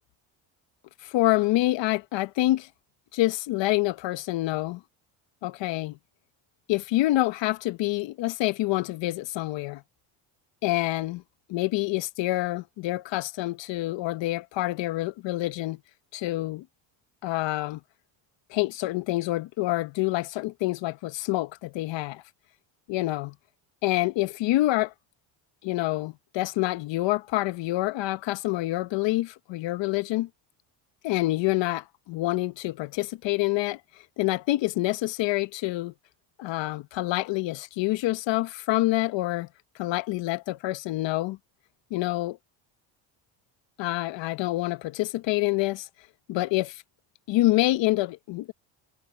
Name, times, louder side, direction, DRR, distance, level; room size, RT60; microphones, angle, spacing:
voice 1, 1.0-2.7 3.1-4.8 5.4-6.0 6.7-9.8 10.6-11.2 11.5-15.8 16.1-16.6 17.2-17.8 18.5-22.2 22.9-23.3 23.8-24.9 25.6-30.3 31.0-33.8 34.2-35.9 36.4-39.5 39.8-41.4 41.9-42.4 43.8-45.9 46.3-46.8 47.3-48.5, left 18 dB, 70° left, 1.2 m, -27 dB
cardioid pair, 105°, 46 cm